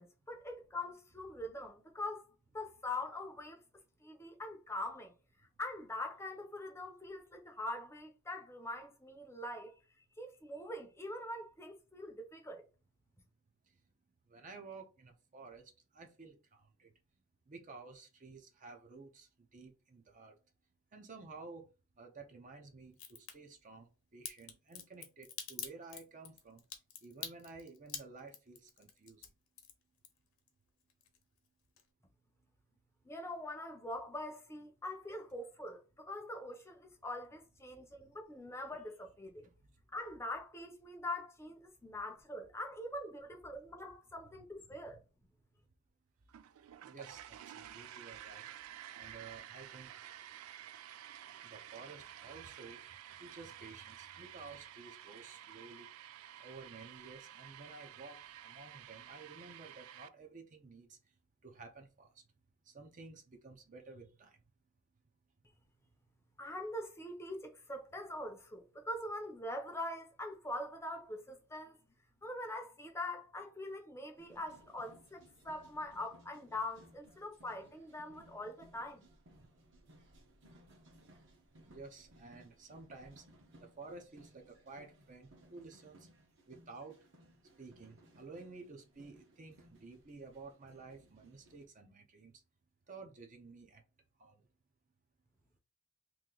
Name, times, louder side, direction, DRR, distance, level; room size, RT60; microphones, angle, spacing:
voice 1, 0.0-2.3 2.5-3.6 4.0-5.1 5.6-9.7 10.2-12.6 33.0-39.5 39.9-45.0 66.4-71.8 72.2-79.0, left 1 dB, 15° left, 0.7 m, -43 dB
voice 2, 14.3-16.9 17.5-20.4 20.9-21.7 22.0-26.6 27.0-29.3 39.4-39.5 46.8-48.4 48.9-49.9 51.4-52.8 53.2-55.9 56.4-61.0 61.4-62.1 62.7-64.4 81.6-83.2 83.6-86.1 86.5-87.0 87.6-92.3 92.9-93.8 94.2-94.4, right 3 dB, 40° right, 0.7 m, -53 dB
Crack, 22.9-23.3 24.2-30.5 30.8-31.5 31.8-31.9, left 8 dB, 75° left, 0.9 m, -45 dB
sound 1, 46.3-60.1, right 11 dB, 85° right, 0.3 m, -52 dB
sound 2, 74.2-91.7, right 1 dB, 60° right, 1.2 m, -63 dB
3.0 x 2.8 x 3.8 m
head